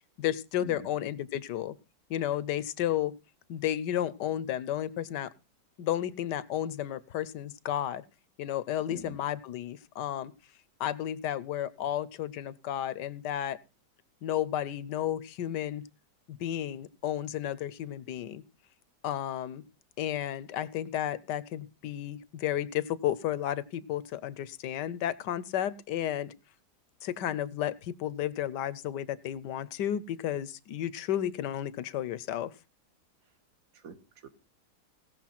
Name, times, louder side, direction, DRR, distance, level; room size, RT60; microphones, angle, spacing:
voice 1, 0.2-1.7 2.1-3.1 3.5-5.3 5.8-8.0 8.4-10.3 10.8-13.6 14.2-15.9 16.3-18.4 19.0-19.6 20.0-26.3 27.0-32.5, left 11 dB, 70° left, 18 dB, 1.4 m, -32 dB
voice 2, 33.7-34.3, right 4 dB, 50° right, 10 dB, 1.7 m, -45 dB
17.0 x 6.7 x 5.8 m, 0.31 s
omnidirectional pair, 1.9 m